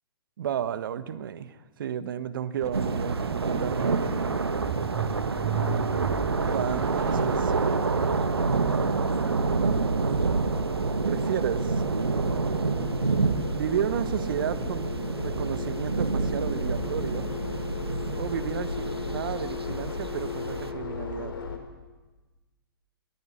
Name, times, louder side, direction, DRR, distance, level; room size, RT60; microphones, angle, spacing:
voice 1, 0.4-4.0 6.4-7.5 9.6-10.3 11.1-11.8 13.6-14.9 15.2-17.3 18.1-21.3, right 9 dB, 60° right, 15 dB, 1.3 m, -32 dB
sound 1, 2.6-14.7, right 9 dB, 30° right, 1.2 m, -38 dB
sound 2, 2.7-20.7, right 4 dB, 85° right, 1.4 m, -28 dB
sound 3, 8.3-21.6, left 5 dB, 65° left, 4.0 m, -37 dB
21.5 x 16.0 x 9.9 m, 1.2 s
figure-of-eight pair, 120°, 13 cm